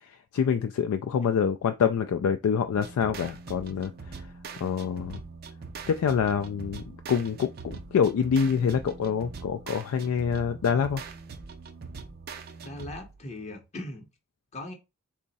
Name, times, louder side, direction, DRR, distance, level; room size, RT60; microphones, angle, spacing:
voice 1, 0.3-3.9 4.6-5.2 5.9-11.0, left 7 dB, 90° left, 0.3 m, -26 dB
sound 1, 2.7-13.2, right 4 dB, 45° right, 0.4 m, -42 dB
voice 2, 12.6-14.1 14.5-14.7, left 2 dB, 30° left, 0.7 m, -39 dB
3.5 x 2.0 x 4.0 m
head